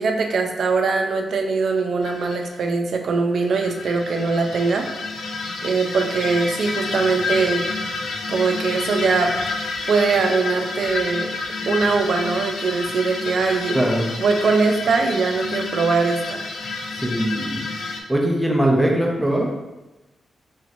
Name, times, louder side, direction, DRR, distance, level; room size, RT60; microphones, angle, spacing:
voice 1, 0.0-4.9 5.6-7.7 8.3-9.3 9.9-11.3 11.7-13.7 14.2-16.5, right 4 dB, 70° right, 3 dB, 0.5 m, -21 dB
sound 1, 2.0-2.5 3.4-18.0, left 3 dB, 85° left, 0.4 m, -29 dB
voice 2, 13.7-14.1 16.9-17.6 18.1-19.5, right 1 dB, 5° right, -1 dB, 0.7 m, -20 dB
4.2 x 3.0 x 2.5 m, 1.0 s
wide cardioid pair, 110°, 0 cm